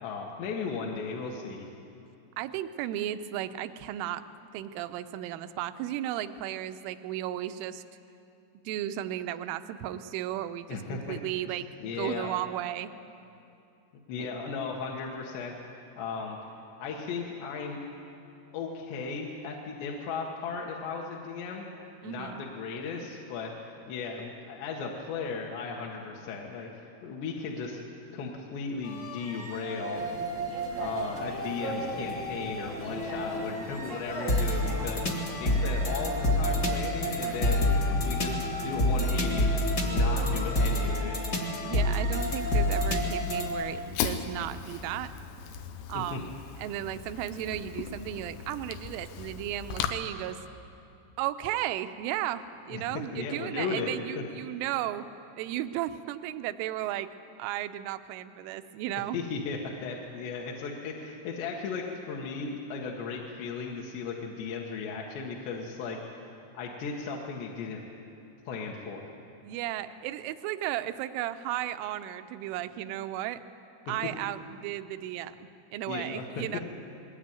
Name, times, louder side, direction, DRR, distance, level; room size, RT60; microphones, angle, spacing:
voice 1, 0.0-1.7 10.7-11.2 11.5-11.6 11.8-12.3 14.1-15.5 16.0-16.4 16.8-17.8 18.5-21.6 22.0-27.8 28.1-30.0 30.8-35.0 35.4-37.6 38.0-41.2 45.9-46.2 52.7-52.8 53.1-54.2 59.1-66.0 66.5-67.8 68.5-69.0 75.9-76.4, left 5 dB, 65° left, -1 dB, 3.4 m, -36 dB
voice 2, 2.4-4.2 4.5-7.8 8.7-12.9 14.2-14.3 22.0-22.4 41.6-45.1 45.9-46.3 46.6-50.4 51.2-55.1 55.4-57.1 57.4-59.2 69.4-73.4 73.9-76.6, right 13 dB, 80° right, 10 dB, 3.2 m, -34 dB
sound 1, 28.8-43.5, left 1 dB, 35° left, 1.7 m, -29 dB
sound 2, 29.9-40.7, right 2 dB, 60° right, 0.8 m, -42 dB
Fire, 42.2-49.9, left 8 dB, 90° left, 3.7 m, -38 dB
21.0 x 18.5 x 9.1 m, 2.6 s
omnidirectional pair, 5.8 m